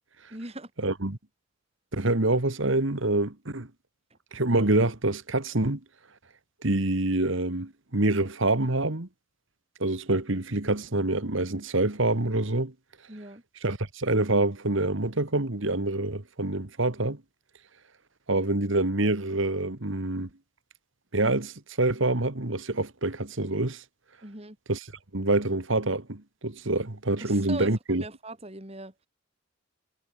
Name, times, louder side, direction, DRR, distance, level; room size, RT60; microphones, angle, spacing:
voice 1, 0.3-0.7 13.1-13.4 24.2-24.6 27.2-28.9, right 2 dB, 30° right, 3.2 m, -40 dB
voice 2, 0.8-1.2 1.9-3.7 4.3-5.8 6.6-9.1 9.8-12.7 13.6-17.2 18.3-20.3 21.1-23.8 24.7-24.8 25.1-28.0, right 2 dB, 65° right, 1.8 m, -26 dB
head